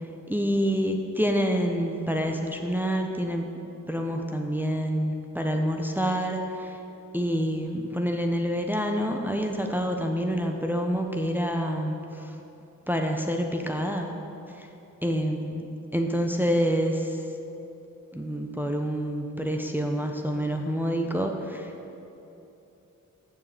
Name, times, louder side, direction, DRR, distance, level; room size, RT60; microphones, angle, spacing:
voice 1, 0.3-3.5 3.9-6.8 7.1-12.3 12.9-14.1 14.5-14.6 15.0-15.6 15.9-17.2 18.1-21.7, equal, 5° right, 2 dB, 0.8 m, -27 dB
6.8 x 6.5 x 7.7 m, 2.9 s
cardioid pair, 50°, 33 cm